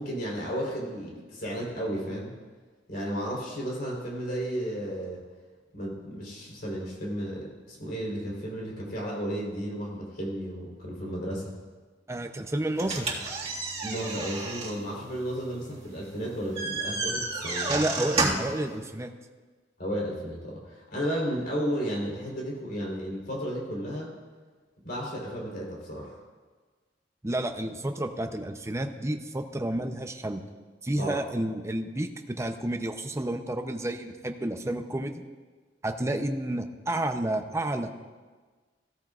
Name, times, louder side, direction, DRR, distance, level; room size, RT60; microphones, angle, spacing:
voice 1, 0.0-2.3 2.9-5.2 5.7-11.6 13.8-17.7 19.8-24.1 24.8-26.2 31.0-31.2, equal, 60° left, -3 dB, 3.9 m, -33 dB
voice 2, 12.1-13.1 17.7-19.1 27.2-30.4 30.8-35.2 35.8-37.9, right 1 dB, 15° right, 6 dB, 0.7 m, -30 dB
sound 1, 12.8-18.6, right 3 dB, 35° right, 1.9 m, -31 dB
16.0 x 13.5 x 2.5 m, 1.4 s
head